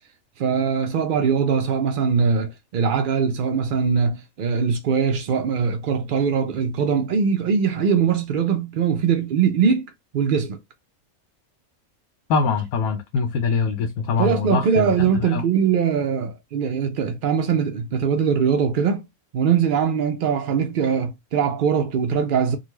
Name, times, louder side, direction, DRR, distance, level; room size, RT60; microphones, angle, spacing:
voice 1, 0.4-9.8 10.1-10.6 14.2-19.0 19.3-22.6, right 6 dB, 80° right, 0.4 m, -21 dB
voice 2, 12.3-14.9 15.2-15.4, left 5 dB, 80° left, 1.1 m, -23 dB
3.8 x 2.2 x 3.0 m
omnidirectional pair, 1.5 m